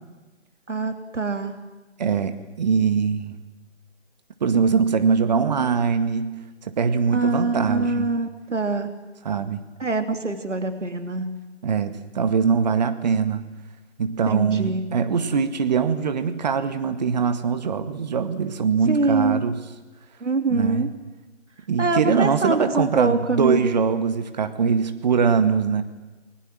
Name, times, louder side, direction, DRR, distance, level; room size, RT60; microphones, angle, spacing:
voice 1, 0.7-1.6 5.5-5.7 7.1-8.9 9.8-11.3 14.3-14.9 18.9-19.4 20.2-20.9 21.8-23.7, right 3 dB, 85° right, 7 dB, 3.1 m, -24 dB
voice 2, 2.0-3.3 4.4-6.4 6.6-8.1 9.2-9.6 11.6-13.4 14.0-19.6 20.5-20.9 21.7-25.8, right 6 dB, 35° right, 9 dB, 1.9 m, -22 dB
29.5 x 21.5 x 7.7 m, 1.2 s
figure-of-eight pair, 155°, 35 cm